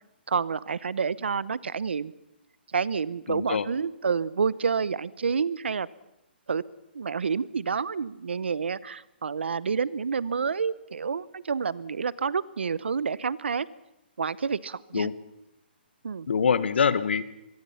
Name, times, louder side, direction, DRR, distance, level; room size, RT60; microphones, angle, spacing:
voice 1, 0.3-2.1 2.7-5.9 6.5-6.6 6.9-13.7 14.2-15.1 16.0-16.3, right 5 dB, 90° right, 20 dB, 0.9 m, -29 dB
voice 2, 3.3-3.7 14.9-15.1 16.3-17.2, left 6 dB, 75° left, 15 dB, 1.4 m, -24 dB
24.5 x 22.0 x 5.7 m, 0.88 s
hypercardioid pair, 160°, 6 cm